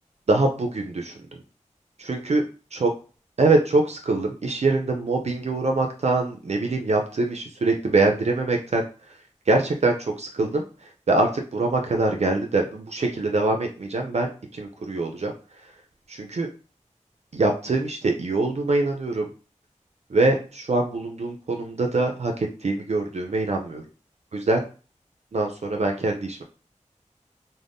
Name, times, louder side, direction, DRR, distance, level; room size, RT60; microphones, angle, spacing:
voice 1, 0.3-1.1 2.0-2.4 2.8-2.9 3.4-8.8 9.5-15.3 16.1-16.5 17.3-19.3 20.1-23.8 24.3-24.6 25.3-26.4, right 2 dB, 60° right, 2 dB, 0.4 m, -24 dB
2.5 x 2.0 x 3.4 m, 0.37 s
wide cardioid pair, 50°, 13 cm